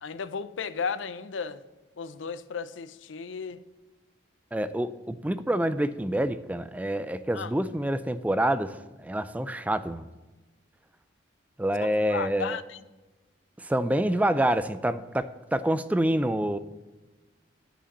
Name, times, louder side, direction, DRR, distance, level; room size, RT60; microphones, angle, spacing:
voice 1, 0.0-1.6 2.0-3.6 7.3-7.5 12.1-12.8, left 5 dB, 80° left, 0.5 m, -34 dB
voice 2, 4.5-10.1 11.6-12.6 13.6-16.6, right 1 dB, 10° right, 0.3 m, -27 dB
10.0 x 5.0 x 6.6 m
head